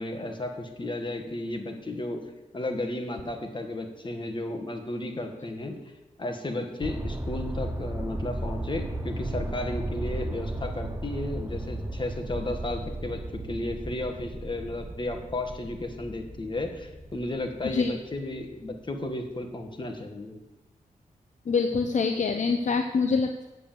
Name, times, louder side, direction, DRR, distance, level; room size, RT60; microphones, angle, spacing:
voice 1, 0.0-2.2 2.5-5.8 6.2-13.2 13.5-20.4, left 2 dB, 35° left, 4 dB, 1.7 m, -33 dB
sound 1, 6.8-19.5 20.0-20.1, right 1 dB, 20° right, 0.9 m, -35 dB
voice 2, 21.5-23.5, left 4 dB, 55° left, 6 dB, 0.7 m, -25 dB
8.4 x 7.5 x 6.9 m, 1.1 s
wide cardioid pair, 95°, 15 cm